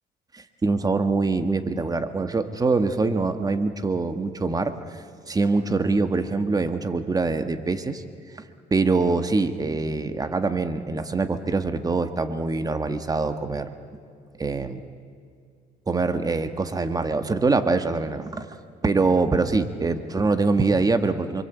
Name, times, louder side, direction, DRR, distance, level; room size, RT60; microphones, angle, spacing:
voice 1, 0.3-8.0 8.7-13.7 14.4-14.8 15.9-18.5 18.8-21.4, right 3 dB, 20° right, 9 dB, 1.5 m, -24 dB
28.5 x 23.0 x 8.2 m, 2.3 s
cardioid pair, 110°, 17 cm